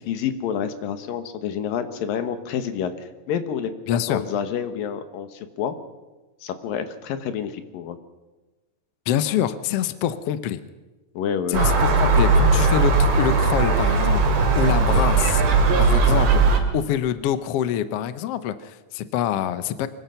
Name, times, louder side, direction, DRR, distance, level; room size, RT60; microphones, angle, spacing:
voice 1, 0.1-5.7 6.4-8.0 11.1-11.6 14.9-15.2, left 8 dB, 85° left, 9 dB, 3.1 m, -28 dB
voice 2, 3.9-4.2 9.1-10.6 11.5-14.2 14.5-15.4 15.8-16.4 16.7-19.9, left 10 dB, 70° left, 12 dB, 1.5 m, -25 dB
Gull seagull, 11.5-16.6, right 3 dB, 65° right, 3.8 m, -18 dB
24.5 x 22.0 x 5.8 m, 1.2 s
omnidirectional pair, 3.9 m